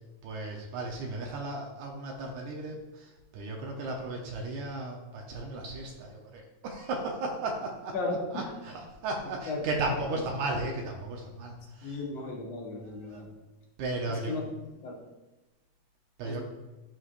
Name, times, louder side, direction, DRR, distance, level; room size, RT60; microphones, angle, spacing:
voice 1, 0.2-8.0 8.3-12.0 12.8-13.3 13.8-14.4 16.2-16.4, right 2 dB, 75° right, 1 dB, 2.2 m, -35 dB
voice 2, 7.9-8.4 9.5-9.6 9.9-10.2 11.8-13.3 14.3-14.4 14.8-15.0 16.2-16.4, left 3 dB, 65° left, -2 dB, 2.5 m, -35 dB
13.0 x 4.6 x 2.5 m, 1.1 s
omnidirectional pair, 3.4 m